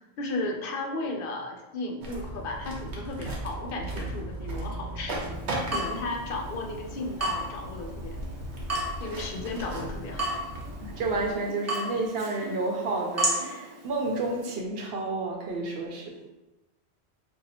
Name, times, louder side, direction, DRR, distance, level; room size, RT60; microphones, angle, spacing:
voice 1, 0.2-5.3 5.7-8.2 9.0-10.4, left 2 dB, 65° left, 2 dB, 0.7 m, -34 dB
sound 1, 2.0-11.3, right 1 dB, 90° right, 1.0 m, -37 dB
Water tap faucet / Drip, 5.3-14.6, right 1 dB, 20° right, 0.5 m, -35 dB
voice 2, 10.8-16.2, right 3 dB, 65° right, 0 dB, 0.8 m, -30 dB
2.7 x 2.3 x 4.1 m, 1.1 s
omnidirectional pair, 1.1 m